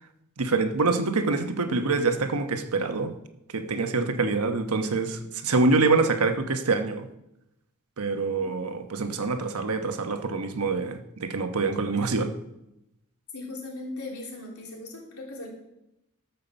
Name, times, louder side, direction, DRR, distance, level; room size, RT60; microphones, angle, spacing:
voice 1, 0.4-3.1 3.5-7.1 8.0-12.3, right 3 dB, 90° right, 7 dB, 1.1 m, -25 dB
voice 2, 13.3-15.5, left 2 dB, 85° left, -2 dB, 3.6 m, -38 dB
12.5 x 5.8 x 6.9 m, 0.87 s
head